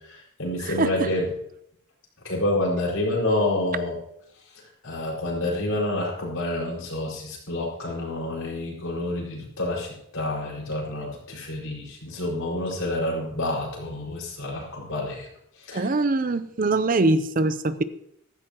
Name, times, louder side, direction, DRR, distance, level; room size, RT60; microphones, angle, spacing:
voice 1, 0.1-1.3 2.2-4.0 4.8-15.3 15.7-15.9, left 1 dB, 75° left, -3 dB, 5.1 m, -28 dB
voice 2, 0.6-1.1 15.7-17.8, right 2 dB, 40° right, 13 dB, 0.6 m, -23 dB
15.5 x 13.5 x 3.0 m, 0.74 s
head